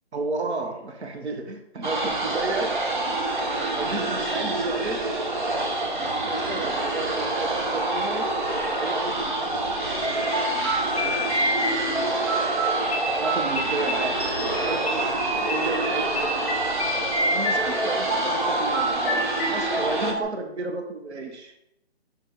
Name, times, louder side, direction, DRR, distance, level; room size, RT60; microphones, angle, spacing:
voice 1, 0.1-2.8 3.5-5.1 5.7-8.3 8.8-9.7 10.6-12.3 13.1-16.7 17.3-21.5, right 3 dB, 90° right, 5 dB, 1.0 m, -33 dB
sound 1, 1.8-20.1, right 2 dB, 50° right, 0.8 m, -27 dB
sound 2, 10.0-20.2, equal, 15° right, 1.7 m, -28 dB
5.8 x 4.0 x 4.0 m, 0.81 s
hypercardioid pair, 180°, 32 cm